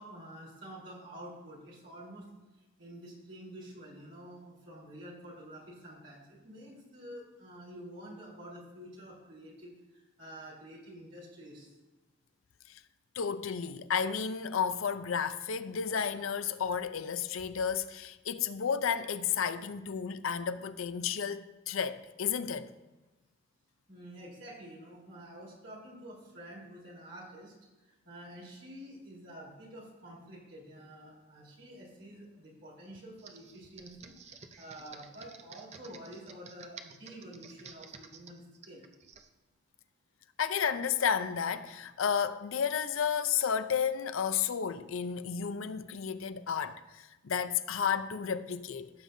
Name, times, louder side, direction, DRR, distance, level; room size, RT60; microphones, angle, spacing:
voice 1, 0.0-2.2 2.8-11.7 23.9-27.5 28.0-38.9, right 1 dB, 60° right, 4.0 m, -49 dB
voice 2, 13.2-22.7 40.4-48.9, left 7 dB, 80° left, 0.5 m, -32 dB
Computer keyboard, 33.2-39.3, right 5 dB, 30° right, 0.5 m, -52 dB
17.0 x 7.4 x 2.7 m
head